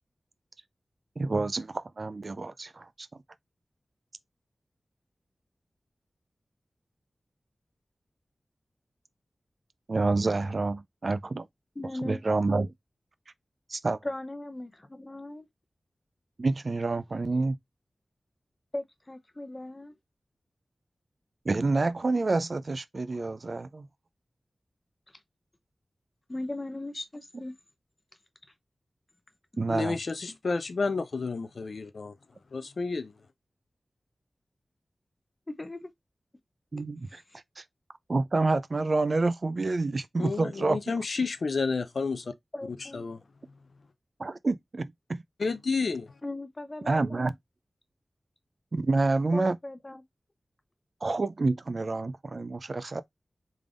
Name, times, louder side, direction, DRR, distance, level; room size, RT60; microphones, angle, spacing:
voice 1, 1.2-3.1 9.9-11.5 12.0-12.7 13.7-14.0 16.4-17.6 21.5-23.9 29.6-30.0 36.7-37.2 37.6-37.7 38.1-40.8 44.2-45.2 46.9-47.3 48.7-49.6 51.0-53.0, right 3 dB, 50° right, 0.3 m, -28 dB
voice 2, 11.8-12.2 14.0-15.5 18.7-19.9 26.3-27.5 35.5-35.9 37.1-37.2 42.5-43.1 46.2-47.2 49.3-50.0, left 1 dB, 25° left, 0.6 m, -38 dB
voice 3, 29.7-32.1 32.5-33.1 40.2-42.3 42.7-43.2 45.4-46.1, left 4 dB, 70° left, 0.4 m, -31 dB
3.6 x 3.4 x 2.4 m
wide cardioid pair, 95°, 0 cm